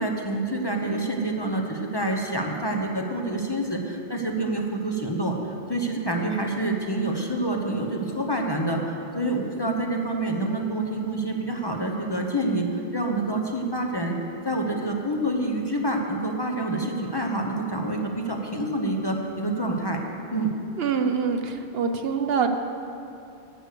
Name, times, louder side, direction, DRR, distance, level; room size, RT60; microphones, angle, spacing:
voice 1, 0.0-5.4 5.7-14.2 14.4-20.0 20.3-20.5, right 1 dB, 25° left, 1 dB, 0.8 m, -27 dB
voice 2, 20.8-22.5, right 6 dB, 65° right, 6 dB, 0.9 m, -25 dB
11.0 x 8.1 x 6.7 m, 2.7 s
omnidirectional pair, 1.1 m